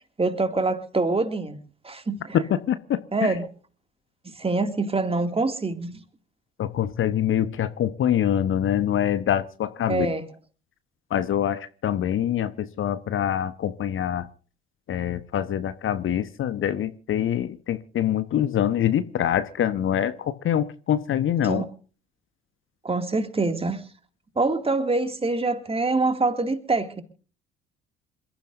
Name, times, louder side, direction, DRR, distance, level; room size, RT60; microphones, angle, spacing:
voice 1, 0.2-1.6 1.8-2.2 3.1-3.5 4.2-6.0 9.9-10.2 21.4-21.6 22.8-23.8 24.4-27.0, right 3 dB, 20° right, 2.4 m, -25 dB
voice 2, 2.3-3.4 6.6-10.1 11.1-14.3 14.9-21.7, left 10 dB, 45° left, 1.0 m, -25 dB
27.5 x 14.5 x 2.6 m
figure-of-eight pair, 50°, 29 cm